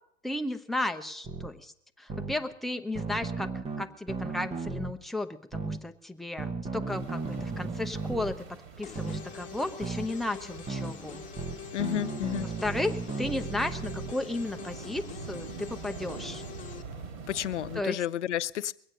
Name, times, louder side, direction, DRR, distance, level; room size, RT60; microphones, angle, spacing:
voice 1, 0.2-1.7 2.0-3.5 3.8-8.4 8.8-11.2 12.6-16.4 17.8-18.0, left 2 dB, ahead, 6 dB, 0.6 m, -34 dB
sound 1, 1.2-1.5 2.1-2.4 3.0-4.9 5.5-5.8 6.4-8.4 8.9-9.2 9.8-10.1 10.7-10.9 11.4-14.1, right 4 dB, 15° right, 0.9 m, -35 dB
sound 2, 6.9-17.8, right 5 dB, 45° right, 2.5 m, -45 dB
sound 3, 8.8-16.8, left 8 dB, 20° left, 1.4 m, -45 dB
voice 2, 11.7-12.5 17.3-18.7, left 12 dB, 75° left, 16 dB, 0.6 m, -31 dB
21.5 x 8.8 x 6.5 m, 0.72 s
hypercardioid pair, 100°, 36 cm